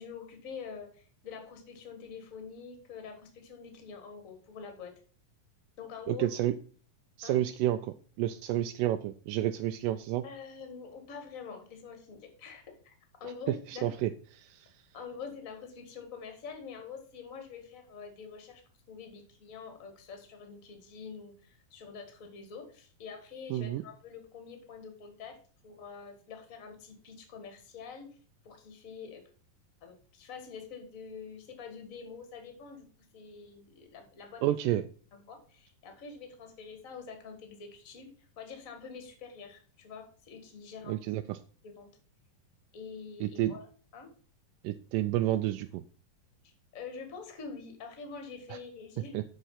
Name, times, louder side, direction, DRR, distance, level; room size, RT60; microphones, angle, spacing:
voice 1, 0.0-4.9 5.8-6.3 7.2-7.4 10.2-12.9 13.2-13.9 14.9-18.6 18.9-28.1 28.4-29.3 29.8-32.8 33.1-34.4 35.3-41.0 41.6-41.9 42.7-43.7 43.9-44.1 46.4-49.2, left 5 dB, 40° left, 5 dB, 1.2 m, -46 dB
voice 2, 6.1-6.5 7.2-10.2 13.2-14.1 14.4-14.9 23.5-23.8 34.4-34.8 40.9-41.4 43.2-43.5 44.6-45.8 48.5-48.6 49.1-49.2, right 13 dB, 80° right, 8 dB, 2.0 m, -30 dB
7.3 x 5.6 x 5.6 m, 0.41 s
omnidirectional pair, 4.1 m